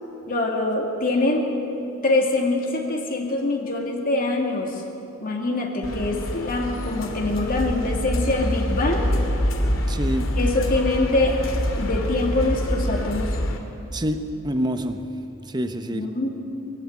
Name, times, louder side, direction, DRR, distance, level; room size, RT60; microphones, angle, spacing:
voice 1, 0.3-1.5 2.0-4.8 5.2-9.1 10.4-11.4 11.8-13.4 15.9-16.4, left 2 dB, 45° left, 0 dB, 2.5 m, -24 dB
sound 1, 5.8-13.6, equal, 75° left, 2.6 m, -26 dB
voice 2, 9.9-10.3 13.9-15.0 15.4-16.1, equal, 20° right, 7 dB, 1.0 m, -26 dB
22.0 x 16.0 x 9.6 m, 2.9 s
head